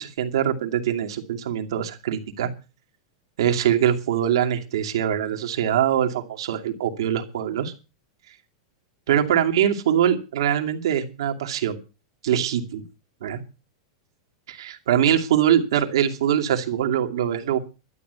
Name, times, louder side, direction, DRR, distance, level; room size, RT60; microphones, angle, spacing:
voice 1, 0.0-2.5 3.4-7.7 9.1-11.8 12.2-12.8 13.2-13.4 14.5-17.6, right 10 dB, 75° right, 4 dB, 2.5 m, -23 dB
12.5 x 8.9 x 8.1 m, 0.32 s
supercardioid pair, 155°, 3 cm